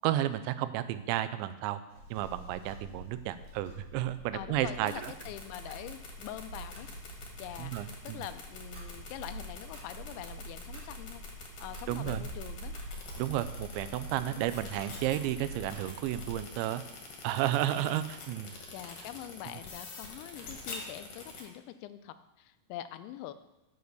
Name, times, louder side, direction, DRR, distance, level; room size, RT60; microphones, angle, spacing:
voice 1, 0.0-1.8 2.1-5.1 7.6-8.2 11.9-12.3 13.2-16.8 17.2-18.5, right 13 dB, 90° right, 13 dB, 2.9 m, -32 dB
Clock, 1.9-16.4, right 1 dB, 55° right, 2.0 m, -45 dB
voice 2, 4.3-11.2 11.6-12.8 14.3-14.8 17.7-18.1 18.7-23.3, left 12 dB, 85° left, 12 dB, 3.0 m, -44 dB
sound 1, 4.8-21.4, left 4 dB, 50° left, 2.4 m, -45 dB
9.4 x 6.6 x 6.7 m, 0.94 s
omnidirectional pair, 5.2 m